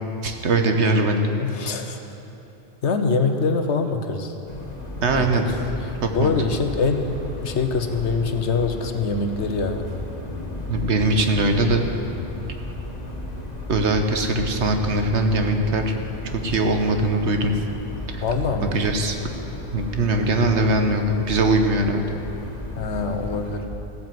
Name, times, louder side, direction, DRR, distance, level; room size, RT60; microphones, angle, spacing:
voice 1, 0.2-1.3 5.0-5.6 6.0-6.4 10.7-11.9 13.7-15.9 16.3-17.6 18.1-18.2 18.7-19.1 19.7-22.0, right 2 dB, 80° right, 5 dB, 1.4 m, -21 dB
voice 2, 1.4-2.0 2.8-4.3 5.1-5.3 5.6-5.7 6.1-7.1 7.4-9.9 18.2-18.8 22.8-23.7, left 4 dB, 80° left, 6 dB, 1.3 m, -24 dB
sound 1, 4.5-23.6, left 1 dB, 40° left, 1.8 m, -34 dB
15.5 x 9.3 x 7.7 m, 2.9 s
omnidirectional pair, 1.1 m